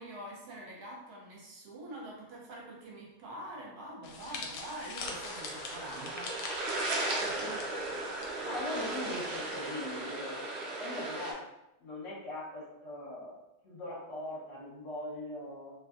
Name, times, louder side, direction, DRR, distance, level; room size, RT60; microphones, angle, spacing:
voice 1, 0.0-6.4, right 1 dB, 70° right, -2 dB, 1.3 m, -45 dB
sound 1, 4.0-8.3 8.6-8.8 9.7-10.0, left 3 dB, 80° left, 1.1 m, -43 dB
sound 2, 5.0-11.3, right 2 dB, 90° right, 0.5 m, -36 dB
voice 2, 7.2-8.0 8.4-11.4 11.8-13.4 13.6-15.7, left 1 dB, 50° left, -6 dB, 1.3 m, -41 dB
2.9 x 2.6 x 2.4 m, 0.89 s
omnidirectional pair, 1.8 m